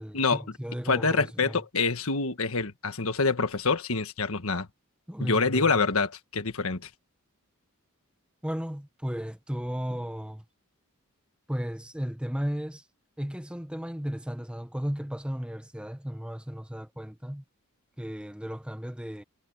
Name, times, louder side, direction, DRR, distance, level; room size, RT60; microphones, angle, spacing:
voice 1, 0.0-1.6 5.1-5.7 8.4-10.4 11.5-12.8 13.2-17.4 18.0-19.2, equal, 5° right, 0.9 m, -34 dB
voice 2, 0.8-4.7 5.2-6.9, left 4 dB, 65° left, 1.5 m, -26 dB
head